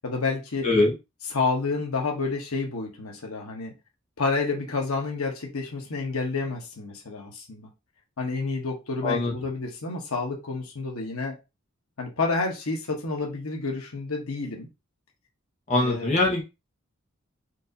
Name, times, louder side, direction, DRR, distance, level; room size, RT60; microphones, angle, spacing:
voice 1, 0.0-0.7 1.3-3.7 4.2-7.7 8.2-11.4 12.0-14.7 15.7-16.1, left 3 dB, 90° left, 1.2 m, -29 dB
voice 2, 15.7-16.4, left 2 dB, 35° left, 1.0 m, -22 dB
4.4 x 2.6 x 2.7 m
head